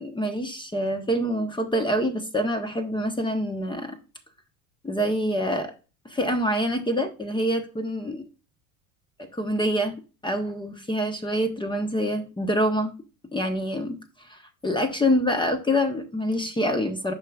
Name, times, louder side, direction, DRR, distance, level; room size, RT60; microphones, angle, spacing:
voice 1, 0.0-4.0 4.8-5.7 6.0-8.2 9.3-9.9 10.2-12.9 13.3-17.1, equal, 10° left, 6 dB, 1.0 m, -26 dB
8.7 x 5.7 x 2.4 m, 0.32 s
hypercardioid pair, 75°, 45 cm